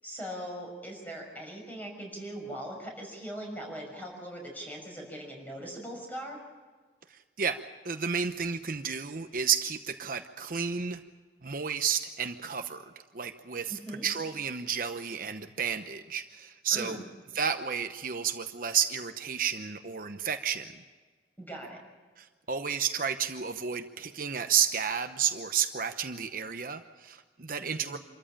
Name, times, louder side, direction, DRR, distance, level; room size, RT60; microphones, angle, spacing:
voice 1, 0.0-6.4 13.7-14.0 16.7-17.0 21.4-21.8 27.6-28.0, right 1 dB, 10° left, 1 dB, 6.3 m, -40 dB
voice 2, 7.1-7.6 7.8-11.0 11.4-12.8 13.1-17.0 17.3-20.8 22.2-28.0, right 7 dB, 50° right, 7 dB, 0.9 m, -31 dB
27.0 x 14.0 x 8.9 m, 1.4 s
head